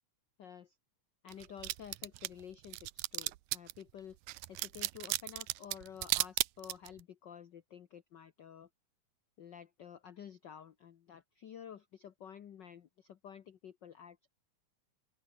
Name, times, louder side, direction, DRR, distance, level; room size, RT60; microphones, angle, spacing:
voice 1, 0.4-0.8 1.2-4.2 4.5-8.7 9.4-14.3, left 8 dB, 65° left, 1.1 m, -51 dB
sound 1, 1.3-3.8 4.3-7.0, right 19 dB, 90° right, 2.2 m, -35 dB
open air
omnidirectional pair, 3.5 m